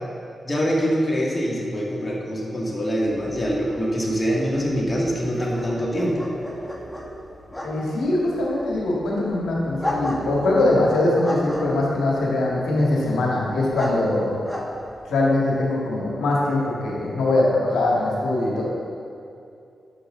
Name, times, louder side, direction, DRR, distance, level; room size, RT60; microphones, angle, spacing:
voice 1, 0.4-6.3, equal, 35° left, -2 dB, 2.1 m, -24 dB
sound 1, 3.1-15.6, left 1 dB, 15° left, 1.8 m, -35 dB
voice 2, 7.6-14.4 15.0-18.6, left 2 dB, 80° left, -4 dB, 2.1 m, -22 dB
9.5 x 7.3 x 3.9 m, 2.5 s
supercardioid pair, 40°, 0 cm